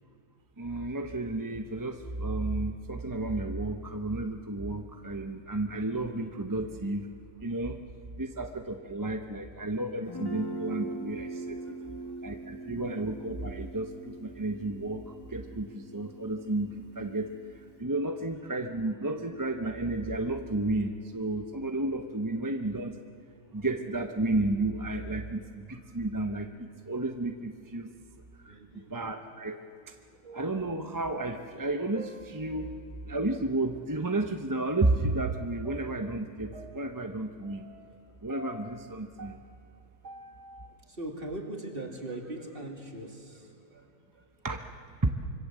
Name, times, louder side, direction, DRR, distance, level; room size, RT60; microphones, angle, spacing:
voice 1, 0.6-7.1 7.4-7.8 8.2-11.8 12.2-23.0 23.5-27.9 28.4-29.6 29.9-30.0 30.3-32.8 33.0-37.7 38.2-39.4 44.4-44.6, right 2 dB, 15° right, 5 dB, 0.8 m, -32 dB
Guitar, 10.1-17.8, right 2 dB, 15° left, 1.6 m, -42 dB
voice 2, 11.5-12.4 18.1-18.3 23.5-23.7 25.3-26.1 28.4-29.1 30.1-30.5 37.9-38.0 40.1-44.5, right 1 dB, 35° right, 1 dB, 2.9 m, -43 dB
sound 1, 29.3-29.9 30.1-32.9 33.7-33.8 34.8-40.7, right 2 dB, 55° right, 1.9 m, -49 dB
25.5 x 25.0 x 7.5 m, 2.5 s
omnidirectional pair, 1.6 m